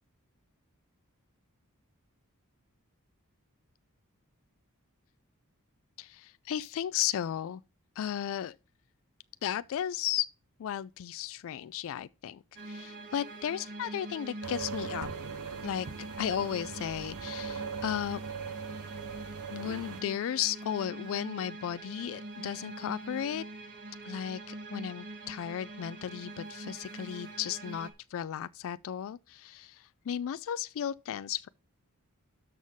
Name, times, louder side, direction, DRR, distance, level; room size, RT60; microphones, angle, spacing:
voice 1, 6.0-7.6 8.0-8.6 9.4-10.3 10.6-15.1 15.6-15.9 16.2-18.2 19.5-23.4 24.0-31.5, left 10 dB, 65° left, 0.3 m, -35 dB
sound 1, 12.6-27.9, right 2 dB, 55° right, 1.4 m, -44 dB
sound 2, 14.4-20.0, right 5 dB, 90° right, 0.7 m, -40 dB
sound 3, 15.0-16.7, right 3 dB, 75° right, 1.0 m, -48 dB
12.5 x 5.5 x 3.6 m
head